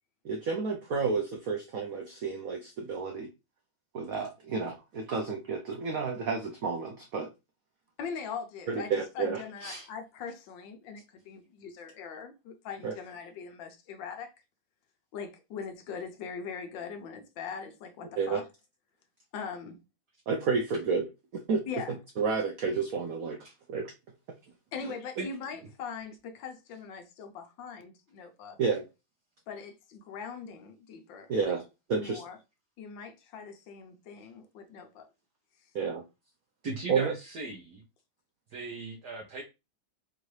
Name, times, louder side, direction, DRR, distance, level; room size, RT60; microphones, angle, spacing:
voice 1, 0.2-3.3 3.9-7.3 8.7-9.4 12.8-12.9 18.2-18.4 20.3-21.0 21.3-21.6 22.2-23.4 23.7-23.9 24.8-24.9 28.6-28.8 31.3-31.6 31.9-32.2 35.7-36.0 36.9-37.1, right 5 dB, 80° right, 0.7 m, -30 dB
voice 2, 8.0-14.3 15.1-18.4 19.3-19.8 21.7-22.0 24.7-28.6 29.5-31.6 32.0-32.4 32.8-35.1, left 6 dB, 70° left, 1.4 m, -41 dB
voice 3, 36.6-37.8 38.5-39.4, right 3 dB, 60° right, 1.3 m, -38 dB
4.7 x 2.6 x 3.1 m
omnidirectional pair, 2.2 m